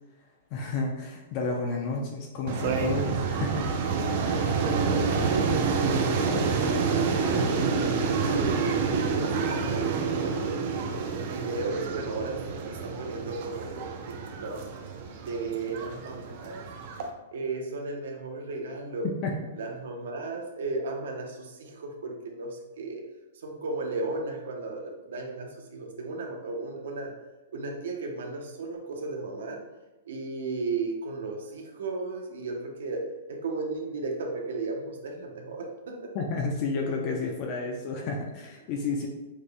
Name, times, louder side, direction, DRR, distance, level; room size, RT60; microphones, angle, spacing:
voice 1, 0.5-4.4 19.2-19.3 36.1-39.1, left 3 dB, 40° left, 0 dB, 0.6 m, -31 dB
sound 1, 2.5-17.1, right 4 dB, 50° right, 0.6 m, -28 dB
voice 2, 4.3-7.6 8.3-10.6 11.3-14.2 14.4-14.6 15.2-16.7 17.3-19.1 19.5-23.0 23.4-27.1 27.5-29.6 30.1-36.1, right 3 dB, 75° right, 2 dB, 0.9 m, -35 dB
6.4 x 3.3 x 2.2 m, 1.1 s
hypercardioid pair, 145°, 0 cm